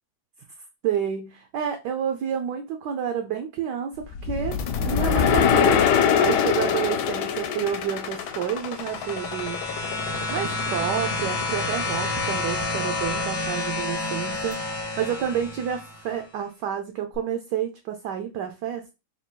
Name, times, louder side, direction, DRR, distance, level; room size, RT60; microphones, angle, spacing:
voice 1, 0.8-9.6 10.3-18.9, right 8 dB, 70° right, 1.1 m, -29 dB
sound 1, 4.1-8.4, left 8 dB, 70° left, 1.1 m, -22 dB
sound 2, 4.5-14.5, left 9 dB, 90° left, 1.4 m, -37 dB
sound 3, 8.3-16.1 17.1-17.2, left 2 dB, 35° left, 0.8 m, -29 dB
4.1 x 2.3 x 4.4 m
omnidirectional pair, 2.1 m